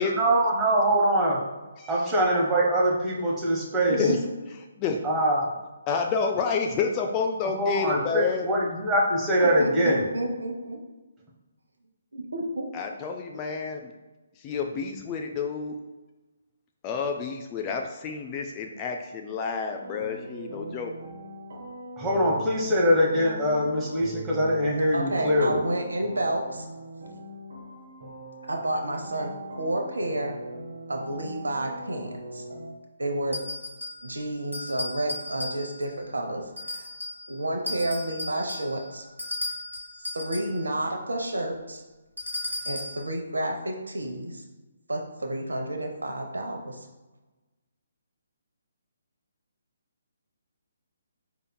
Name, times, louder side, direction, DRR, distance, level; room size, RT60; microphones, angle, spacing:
voice 1, 0.2-1.4 1.9-4.0 5.0-5.5 7.6-10.0 22.0-25.6, equal, 15° right, -4 dB, 0.9 m, -23 dB
voice 2, 1.8-2.1 4.0-4.2 4.8-5.0 5.9-8.5 12.7-13.9 14.4-15.8 16.8-21.0, left 5 dB, 25° left, 3 dB, 0.3 m, -29 dB
voice 3, 3.9-4.2 9.4-10.8 12.1-12.7 24.9-26.7 28.5-29.3 29.6-30.3 30.9-32.4 33.0-33.4 34.0-36.4 36.7-36.9 37.3-39.1 40.1-41.8 42.7-44.4 44.9-46.9, right 1 dB, 70° right, 2 dB, 0.6 m, -30 dB
sound 1, 19.8-32.7, right 2 dB, 55° right, 1.2 m, -41 dB
sound 2, 33.3-34.1 34.5-35.9 36.6-37.3 37.7-40.6 42.2-43.0, left 2 dB, 90° right, 1.0 m, -35 dB
4.9 x 2.9 x 2.2 m, 1.2 s
figure-of-eight pair, 135°, 0 cm